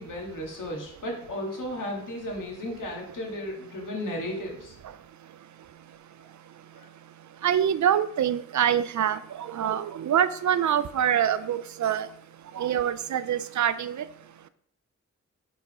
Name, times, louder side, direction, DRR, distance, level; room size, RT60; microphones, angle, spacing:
voice 1, 0.0-4.7 6.8-6.9, left 1 dB, 80° left, 0 dB, 1.8 m, -34 dB
voice 2, 7.4-12.1 12.6-14.0, right 9 dB, 65° right, 14 dB, 0.4 m, -25 dB
5.7 x 4.1 x 4.2 m, 0.66 s
wide cardioid pair, 80°, 32 cm